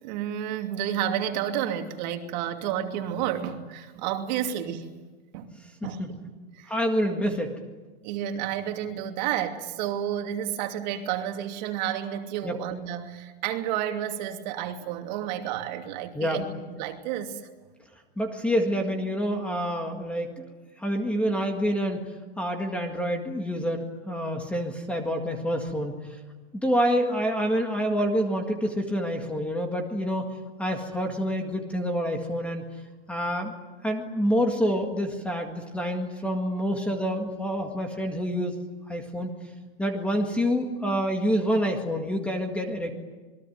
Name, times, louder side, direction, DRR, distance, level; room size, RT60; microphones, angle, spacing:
voice 1, 0.0-4.9 5.3-5.5 5.8-6.7 8.0-17.4, right 10 dB, 45° right, 2.8 m, -31 dB
voice 2, 6.7-7.6 12.4-12.6 16.1-16.4 18.2-20.5 20.8-22.0 22.4-26.2 26.5-30.3 30.6-32.6 33.1-33.5 33.8-38.5 38.9-39.3 39.8-42.9, equal, 5° left, 1.9 m, -27 dB
27.5 x 22.0 x 9.4 m
supercardioid pair, 165°, 32 cm